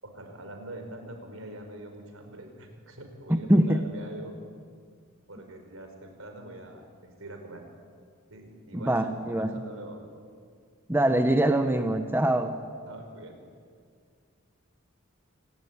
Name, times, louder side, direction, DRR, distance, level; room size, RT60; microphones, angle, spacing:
voice 1, 0.0-4.3 5.3-7.7 8.3-10.0 12.9-13.4, right 1 dB, 75° right, 5 dB, 4.8 m, -44 dB
voice 2, 3.3-3.8 8.7-9.5 10.9-12.5, right 1 dB, 10° right, 7 dB, 1.1 m, -23 dB
26.5 x 18.0 x 9.7 m, 2.1 s
head